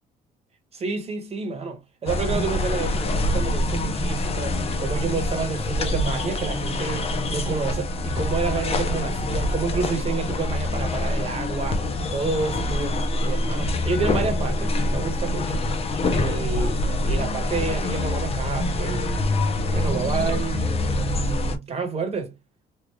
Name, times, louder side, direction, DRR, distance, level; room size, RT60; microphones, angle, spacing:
voice 1, 0.7-11.9 12.1-15.6 16.1-19.2 19.7-22.3, right 5 dB, 35° right, 1.3 m, -29 dB
sound 1, 2.1-21.6, left 2 dB, 35° left, 0.8 m, -25 dB
3.3 x 2.4 x 3.4 m
cardioid pair, 110°, 17 cm